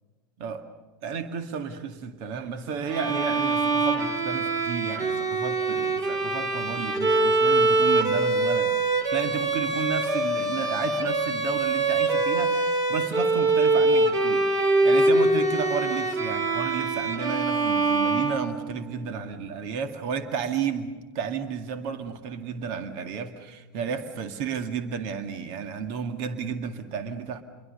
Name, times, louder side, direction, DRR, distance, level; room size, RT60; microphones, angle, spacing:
voice 1, 1.0-14.6 14.8-27.4, right 6 dB, 50° right, 7 dB, 2.1 m, -32 dB
Bowed string instrument, 2.9-18.8, right 2 dB, 30° right, 3.5 m, -24 dB
28.5 x 23.0 x 6.7 m, 1.3 s
hypercardioid pair, 95°, 11 cm